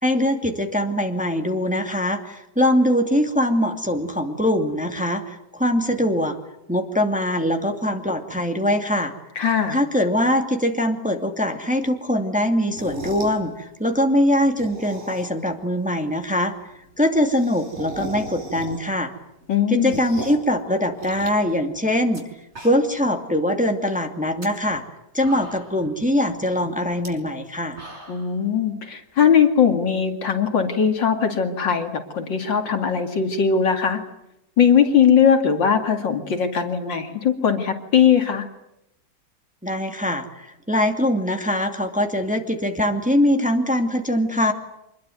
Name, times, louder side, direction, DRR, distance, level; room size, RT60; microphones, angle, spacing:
voice 1, 0.0-6.4 6.7-9.1 9.7-16.5 17.0-19.1 19.7-22.2 22.6-24.8 25.1-27.8 39.6-44.5, left 1 dB, 5° right, 4 dB, 2.4 m, -22 dB
voice 2, 9.4-9.8 19.5-20.0 28.1-34.0 34.6-38.5, left 7 dB, 70° left, 5 dB, 3.1 m, -19 dB
sound 1, 12.6-13.4 14.4-15.5 15.8-15.9 16.2-16.3 16.5-16.6 16.8-19.0 19.4-20.5 21.0-22.2 22.5-23.1 23.4-23.5 24.2-24.5 24.9-25.0 25.2-25.8 26.9-27.1 27.5-28.3, right 1 dB, 35° right, 6.1 m, -37 dB
26.0 x 21.5 x 9.4 m, 0.85 s
omnidirectional pair, 2.1 m